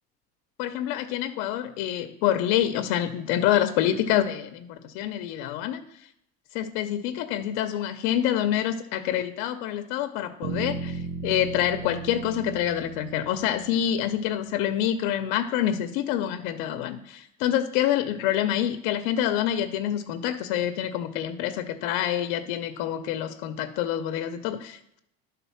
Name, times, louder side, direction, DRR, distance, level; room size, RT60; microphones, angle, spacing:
voice 1, 0.6-5.8 6.5-25.0, left 11 dB, 75° left, 8 dB, 0.7 m, -27 dB
sound 1, 10.4-14.4, right 4 dB, 80° right, 0.9 m, -36 dB
11.0 x 3.9 x 5.6 m, 0.76 s
cardioid pair, 150°, 32 cm